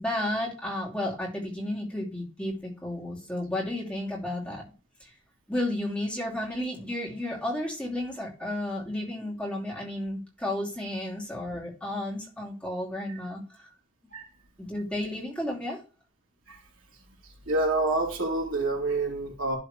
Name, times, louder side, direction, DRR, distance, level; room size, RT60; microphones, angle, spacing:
voice 1, 0.0-4.6 5.0-5.1 5.5-13.7 14.6-15.8, left 1 dB, 5° left, 2.6 m, -32 dB
voice 2, 17.2-19.6, right 2 dB, 85° right, 2.8 m, -28 dB
12.0 x 4.0 x 3.1 m
head